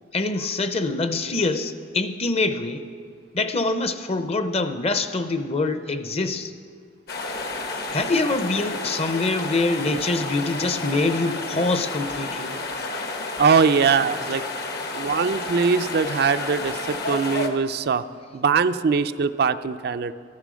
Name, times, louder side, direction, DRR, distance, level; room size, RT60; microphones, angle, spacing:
voice 1, 0.1-2.8 3.3-6.5 7.9-12.5, left 3 dB, 35° left, 10 dB, 0.7 m, -25 dB
sound 1, 7.1-17.5, left 2 dB, 60° left, 1.2 m, -31 dB
voice 2, 13.4-14.4 14.9-18.0 18.3-20.1, right 5 dB, 60° right, 10 dB, 0.4 m, -21 dB
13.5 x 11.5 x 6.3 m, 2.1 s
head